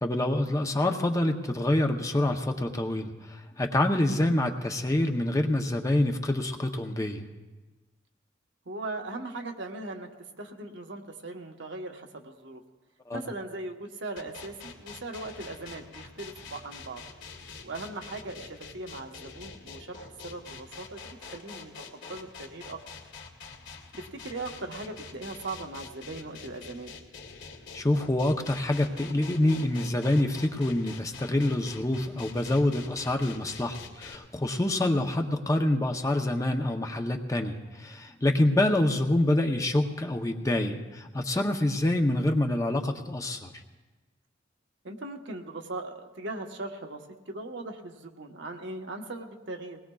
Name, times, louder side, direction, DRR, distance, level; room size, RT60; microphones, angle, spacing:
voice 1, 0.0-7.3 13.1-13.2 27.7-43.5, left 1 dB, 15° left, 4 dB, 0.7 m, -26 dB
voice 2, 8.7-10.1 10.4-12.6 13.1-17.0 17.6-21.7 22.1-22.8 24.0-26.9 35.2-35.3 44.8-47.0 47.3-49.8, right 2 dB, 65° right, 3 dB, 1.1 m, -39 dB
sound 1, 14.2-34.2, left 5 dB, 75° left, 2.2 m, -45 dB
21.5 x 19.0 x 2.3 m, 1.2 s
head